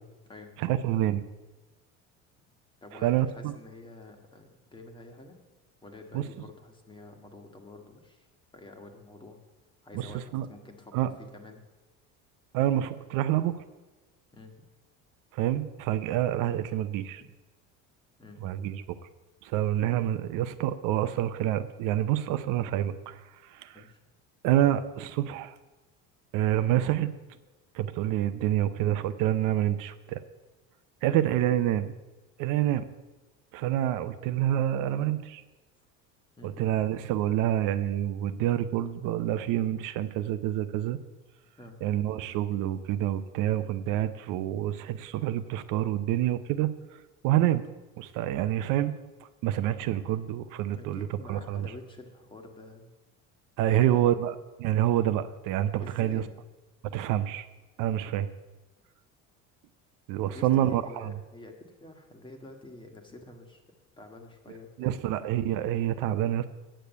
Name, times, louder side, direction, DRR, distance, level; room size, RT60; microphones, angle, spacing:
voice 1, 0.6-1.2 3.0-3.5 6.1-6.2 9.9-10.5 10.9-11.1 12.5-13.6 15.3-17.2 18.4-18.8 19.4-23.8 24.4-25.5 26.3-27.1 27.7-30.2 31.0-31.9 32.4-32.9 33.5-35.4 36.4-41.0 41.8-46.7 47.2-47.6 48.0-48.9 49.4-51.7 53.6-56.2 56.8-57.5 57.8-58.3 60.1-61.1 64.8-66.5, right 12 dB, 70° right, 11 dB, 0.7 m, -27 dB
voice 2, 2.8-5.4 5.8-8.3 8.5-9.4 9.8-10.2 10.5-11.6 14.3-14.5 17.2-17.3 18.2-18.4 23.7-24.0 31.0-31.2 36.4-36.6 39.3-39.5 41.6-41.8 47.3-47.5 50.7-53.0 53.6-54.1 55.8-56.3 60.1-63.6 64.0-65.0, left 2 dB, 15° left, 4 dB, 1.4 m, -48 dB
8.9 x 6.8 x 8.1 m, 1.1 s
cardioid pair, 140°, 33 cm